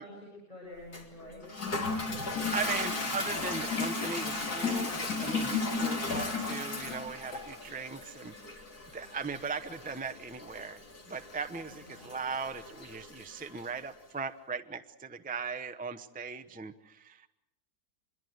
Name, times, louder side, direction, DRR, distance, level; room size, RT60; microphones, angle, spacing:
voice 1, 0.0-1.9 2.2-2.8 11.9-12.1, left 1 dB, 20° left, -3 dB, 7.5 m, -48 dB
Toilet flush, 0.9-13.7, left 3 dB, 75° left, 3.5 m, -35 dB
voice 2, 2.5-8.6 8.9-10.8 11.1-17.3, right 5 dB, 10° right, 8 dB, 0.5 m, -38 dB
25.5 x 22.0 x 8.0 m, 0.91 s
omnidirectional pair, 1.7 m